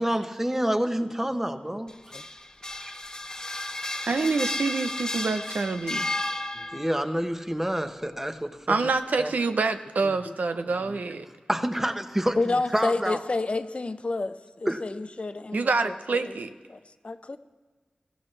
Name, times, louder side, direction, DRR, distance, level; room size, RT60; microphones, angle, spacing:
voice 1, 0.0-1.9 2.8-2.9 6.7-8.8 9.2-9.3 11.5-13.2 14.7-14.8, right 1 dB, 15° right, 7 dB, 1.0 m, -28 dB
sound 1, 1.9-7.1, left 1 dB, 25° left, 0.9 m, -33 dB
voice 2, 4.1-6.1 8.7-11.3 15.5-16.5, right 4 dB, 85° right, 8 dB, 0.7 m, -26 dB
voice 3, 12.4-16.3 16.7-16.8 17.0-17.4, left 3 dB, 50° left, 10 dB, 0.7 m, -30 dB
22.0 x 15.0 x 3.3 m, 1.3 s
wide cardioid pair, 60°, 3 cm